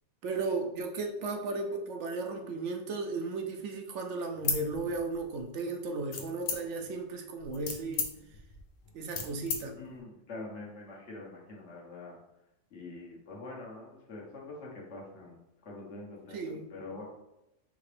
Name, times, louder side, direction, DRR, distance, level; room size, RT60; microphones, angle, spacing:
voice 1, 0.2-8.1 8.9-9.8 16.3-16.7, right 3 dB, 70° right, 4 dB, 0.8 m, -35 dB
sound 1, 4.4-5.4 6.1-6.9 7.4-9.6, left 5 dB, 80° left, 1.1 m, -35 dB
voice 2, 9.7-12.2 12.7-16.4 16.7-17.0, left 2 dB, 65° left, -3 dB, 1.3 m, -45 dB
4.9 x 2.9 x 3.3 m, 0.90 s
omnidirectional pair, 1.3 m